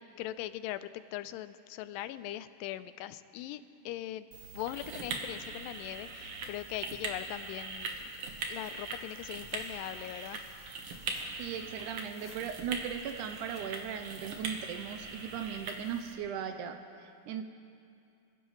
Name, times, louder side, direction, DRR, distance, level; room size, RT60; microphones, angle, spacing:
voice 1, 0.0-4.3 4.5-8.1 8.5-10.4, left 13 dB, 85° left, 13 dB, 2.3 m, -40 dB
sound 1, 4.3-16.1, right 3 dB, 55° right, 1.7 m, -41 dB
Tearing, 7.8-13.9, left 3 dB, 50° left, 2.1 m, -58 dB
voice 2, 11.4-17.4, right 8 dB, 80° right, 7 dB, 2.0 m, -38 dB
27.5 x 15.5 x 3.1 m, 2.5 s
omnidirectional pair, 3.9 m